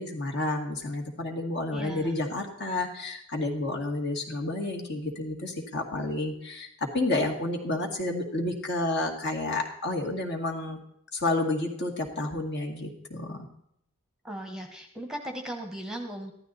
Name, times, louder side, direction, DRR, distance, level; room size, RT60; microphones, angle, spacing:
voice 1, 0.0-10.8 11.1-13.5, left 2 dB, 50° left, 3 dB, 2.3 m, -30 dB
voice 2, 1.7-2.1 14.2-16.3, right 1 dB, ahead, 4 dB, 1.1 m, -37 dB
15.0 x 12.0 x 4.1 m, 0.73 s
head